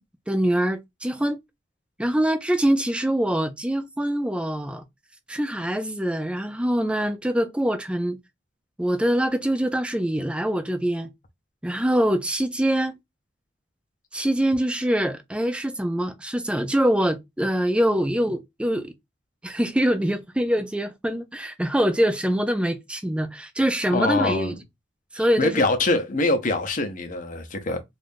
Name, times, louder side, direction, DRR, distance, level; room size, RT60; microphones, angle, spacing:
voice 1, 0.3-1.4 2.0-4.8 5.3-8.2 8.8-11.1 11.6-13.0 14.1-18.9 19.4-24.5 25.1-25.6, right 1 dB, 5° right, 0.4 m, -24 dB
voice 2, 23.9-24.5 25.2-27.8, left 2 dB, 45° left, 0.7 m, -24 dB
2.7 x 2.5 x 3.4 m
head